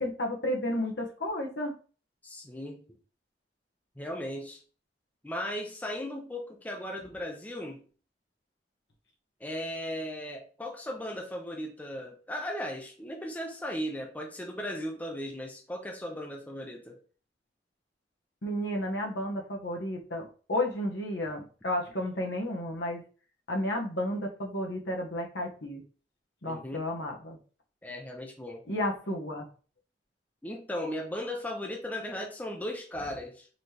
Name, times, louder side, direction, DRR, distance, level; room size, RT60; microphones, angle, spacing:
voice 1, 0.0-1.7 18.4-23.0 23.5-25.8 26.4-27.4 28.7-29.5, left 1 dB, 80° left, 0 dB, 1.1 m, -32 dB
voice 2, 2.2-2.8 4.0-4.6 5.2-7.9 9.4-17.0 26.4-26.8 27.8-28.6 30.4-33.5, left 1 dB, 10° left, 1 dB, 0.6 m, -37 dB
4.2 x 2.9 x 3.3 m, 0.38 s
head